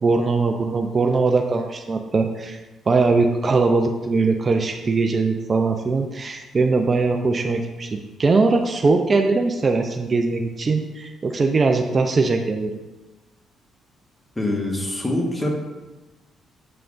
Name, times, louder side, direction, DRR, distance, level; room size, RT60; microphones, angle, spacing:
voice 1, 0.0-2.6 2.9-12.8, right 3 dB, 35° right, 4 dB, 0.5 m, -21 dB
voice 2, 14.3-15.5, left 1 dB, 15° left, 0 dB, 1.4 m, -24 dB
7.7 x 5.7 x 2.5 m, 1.1 s
cardioid pair, 90°, 0 cm